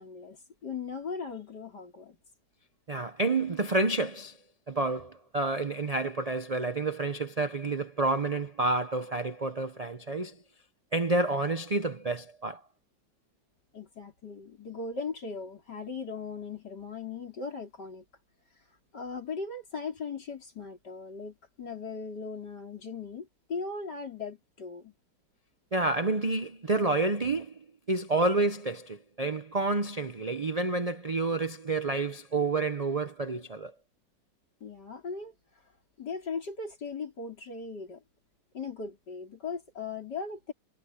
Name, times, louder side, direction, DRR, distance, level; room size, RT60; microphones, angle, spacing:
voice 1, 0.0-2.2 13.7-18.0 18.9-24.9 34.6-35.3 36.0-38.0 38.5-40.5, left 4 dB, 65° left, 5.1 m, -38 dB
voice 2, 2.9-4.4 4.7-10.4 10.9-12.6 25.7-33.7, right 2 dB, 45° right, 0.5 m, -29 dB
omnidirectional pair, 1.9 m